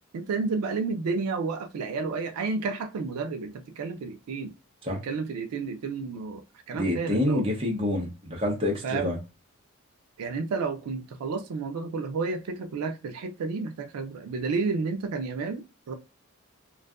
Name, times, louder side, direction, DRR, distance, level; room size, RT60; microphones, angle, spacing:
voice 1, 0.1-4.5 5.0-7.5 8.8-9.2 10.2-15.9, right 4 dB, 85° right, 0.4 m, -31 dB
voice 2, 6.7-9.2, left 1 dB, 25° right, 0.7 m, -27 dB
2.6 x 2.3 x 2.2 m
head